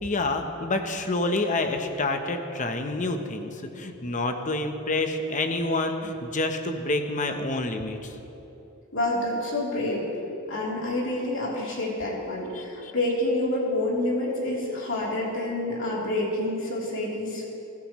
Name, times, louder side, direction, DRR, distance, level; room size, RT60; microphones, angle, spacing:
voice 1, 0.0-8.1 12.5-12.9, left 2 dB, 35° left, 6 dB, 0.9 m, -28 dB
voice 2, 8.9-10.1 10.5-17.4, left 1 dB, 60° left, -4 dB, 3.4 m, -28 dB
23.5 x 12.5 x 3.1 m, 2.9 s
head